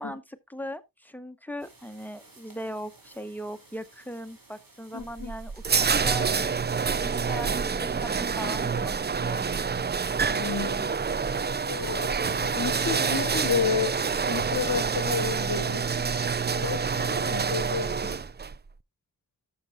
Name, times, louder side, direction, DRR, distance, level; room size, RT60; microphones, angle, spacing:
voice 1, 0.0-6.2 7.0-8.9 9.2-9.5, equal, 5° left, 0.9 m, -39 dB
sound 1, 1.6-18.2, right 2 dB, 55° right, 3.5 m, -56 dB
voice 2, 4.9-5.3 10.3-11.0 11.7-14.0 14.3-15.9 16.5-18.2, left 6 dB, 50° left, 1.1 m, -31 dB
sound 2, 5.0-18.5, right 5 dB, 25° right, 0.4 m, -27 dB
12.5 x 6.8 x 2.4 m
cardioid pair, 60°, 40 cm